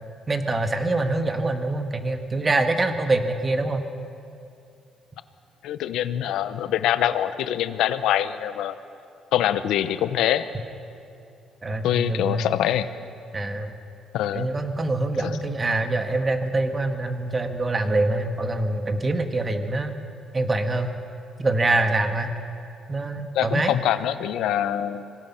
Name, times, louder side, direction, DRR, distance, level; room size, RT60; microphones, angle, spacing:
voice 1, 0.3-3.9 11.6-12.7 13.3-13.8 14.3-19.9 20.3-21.0 21.4-22.3 22.9-23.7, right 2 dB, 25° right, 6 dB, 1.7 m, -25 dB
voice 2, 5.6-8.8 9.3-10.5 11.8-12.9 14.1-14.5 15.2-15.3 23.3-25.1, left 11 dB, 85° left, 12 dB, 0.8 m, -24 dB
25.5 x 17.5 x 5.7 m, 2.6 s
cardioid pair, 90°, 0 cm